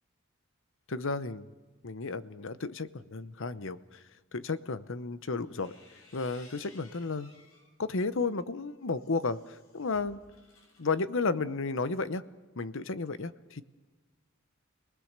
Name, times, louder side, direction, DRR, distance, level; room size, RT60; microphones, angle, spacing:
voice 1, 0.9-1.5 1.8-4.0 4.3-5.8 6.1-7.3 7.8-10.2 10.8-12.2 12.6-13.6, left 3 dB, 65° left, 14 dB, 0.9 m, -33 dB
sound 1, 5.4-7.7 8.2-11.0, left 2 dB, 85° left, 6.8 m, -59 dB
29.5 x 20.0 x 6.7 m, 1.3 s
head